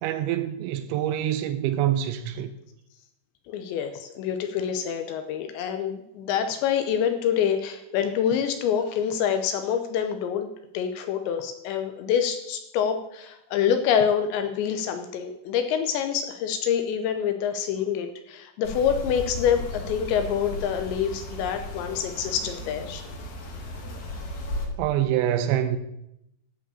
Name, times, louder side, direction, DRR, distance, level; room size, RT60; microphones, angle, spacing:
voice 1, 0.0-2.5 24.8-25.8, right 11 dB, 80° right, 2.8 m, -25 dB
voice 2, 3.5-10.5 10.7-23.0, left 8 dB, 80° left, 2.8 m, -26 dB
sound 1, 18.6-24.6, left 1 dB, 60° left, 2.0 m, -35 dB
14.0 x 4.9 x 7.2 m
omnidirectional pair, 5.6 m